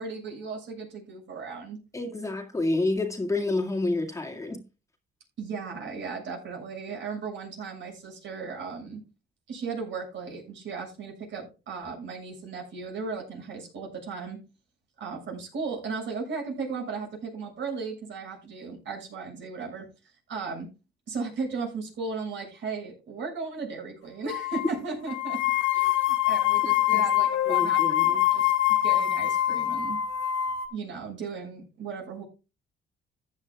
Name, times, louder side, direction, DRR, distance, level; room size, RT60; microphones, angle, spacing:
voice 1, 0.0-1.8 5.4-9.0 9.5-14.4 15.0-19.9 20.3-20.7 21.1-25.4 25.7-28.5 28.8-30.0 30.7-32.2, right 4 dB, 70° right, 7.0 m, -36 dB
voice 2, 1.9-4.6 26.9-27.0 27.5-28.2, left 2 dB, 15° left, 2.0 m, -29 dB
sound 1, 24.3-24.7 25.1-30.7, left 13 dB, 85° left, 1.7 m, -24 dB
15.0 x 9.7 x 2.3 m
cardioid pair, 90°, 20 cm